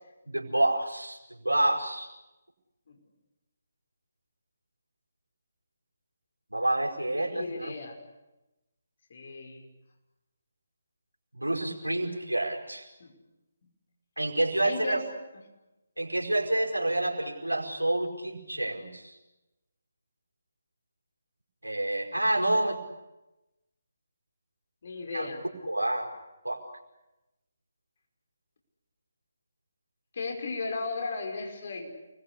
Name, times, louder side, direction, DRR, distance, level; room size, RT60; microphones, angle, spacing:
voice 1, 0.2-2.1 6.5-7.7 11.3-12.9 14.2-15.0 16.0-19.2 21.6-22.8 25.1-25.3 25.7-26.1 26.4-26.6, right 1 dB, 85° right, 0 dB, 5.1 m, -28 dB
voice 2, 7.1-8.0 9.1-9.6 13.0-13.1 14.6-15.0 24.8-25.4 30.1-31.9, left 3 dB, 45° left, 3 dB, 5.7 m, -35 dB
29.0 x 21.5 x 8.5 m, 1.0 s
figure-of-eight pair, 145°, 0 cm